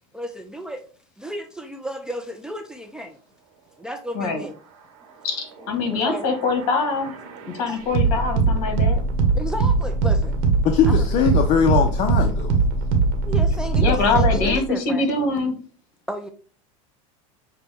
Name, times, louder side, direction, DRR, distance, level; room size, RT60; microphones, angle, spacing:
voice 1, 0.1-0.8 1.2-3.2 3.8-4.6 5.6-6.3 7.7-7.8 9.3-10.4 10.9-11.2 13.2-15.1 16.1-16.3, equal, 5° right, 5 dB, 0.4 m, -33 dB
voice 2, 5.2-7.1 7.5-9.0 13.8-15.5, left 4 dB, 60° left, 5 dB, 1.7 m, -23 dB
sound 1, 5.9-14.6, right 4 dB, 70° right, 1.2 m, -21 dB
voice 3, 10.6-12.5, left 7 dB, 45° left, 4 dB, 0.6 m, -20 dB
6.6 x 2.2 x 3.4 m, 0.40 s
supercardioid pair, 120°, 17 cm